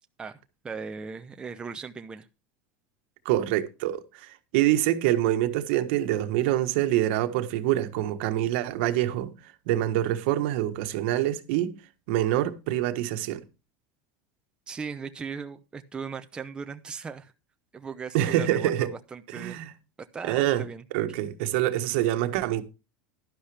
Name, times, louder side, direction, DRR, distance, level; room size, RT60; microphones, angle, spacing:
voice 1, 0.6-2.3 14.7-17.3 17.7-19.6 20.1-20.8, right 5 dB, 15° right, 0.7 m, -38 dB
voice 2, 3.2-9.3 9.7-11.8 12.1-13.4 18.1-18.9 19.3-19.7 20.2-20.6 20.9-22.6, right 13 dB, 70° right, 1.4 m, -25 dB
11.5 x 11.0 x 3.4 m
supercardioid pair, 150°, 6 cm